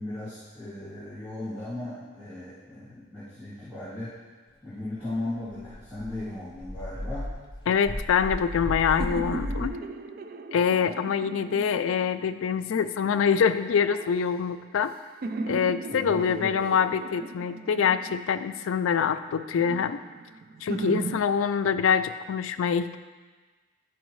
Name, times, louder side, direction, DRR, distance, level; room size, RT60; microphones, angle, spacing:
voice 1, 0.0-4.1 4.6-7.3 15.9-16.6, left 2 dB, 15° right, -15 dB, 2.3 m, -37 dB
Dog, 5.1-5.2 5.5-9.7, left 1 dB, 20° left, 0.6 m, -35 dB
voice 2, 7.7-9.8 10.5-14.9 15.5-20.0 20.6-23.0, left 7 dB, 80° left, 10 dB, 0.4 m, -25 dB
sound 1, 8.1-12.4 13.0-14.9 15.2-18.6 19.1-21.2, right 3 dB, 45° right, 0.3 m, -38 dB
12.0 x 4.7 x 3.1 m, 1.4 s
head